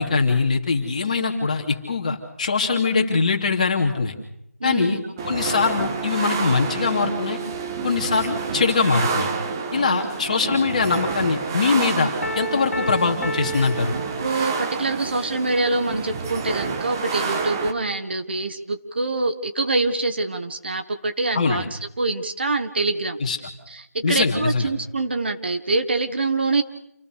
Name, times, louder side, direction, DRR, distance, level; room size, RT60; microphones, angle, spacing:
voice 1, 0.0-4.1 4.6-7.4 7.8-9.3 9.7-13.9 21.3-21.7 23.2-23.4 24.0-24.7, left 4 dB, 30° left, 3 dB, 3.0 m, -22 dB
voice 2, 4.6-5.0 9.7-10.1 10.4-10.5 14.2-21.6 22.0-23.2 23.7-26.6, right 3 dB, 40° right, 8 dB, 1.6 m, -25 dB
sound 1, 5.2-17.7, right 5 dB, 15° right, 1.0 m, -29 dB
Piano, 12.2-14.8, right 1 dB, 65° left, 2.4 m, -31 dB
28.5 x 19.5 x 6.6 m, 0.81 s
figure-of-eight pair, 170°, 8 cm